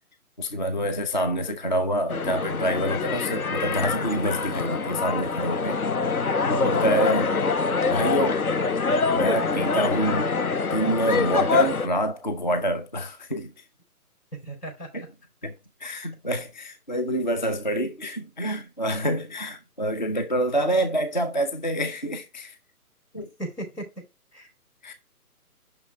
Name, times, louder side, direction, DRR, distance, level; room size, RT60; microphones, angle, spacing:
voice 1, 0.4-5.8 6.5-7.3 7.9-8.4 9.1-10.3 10.7-13.5 15.4-15.5 15.8-22.6 23.1-23.3 24.8-24.9, right 1 dB, 30° left, 0.4 m, -27 dB
sound 1, 2.1-11.9, left 4 dB, 70° left, 1.0 m, -25 dB
voice 2, 6.4-6.9 14.4-15.1 23.4-23.9 24.3-24.5, equal, 90° left, 4.3 m, -36 dB
5.8 x 5.8 x 3.9 m
figure-of-eight pair, 145°, 46 cm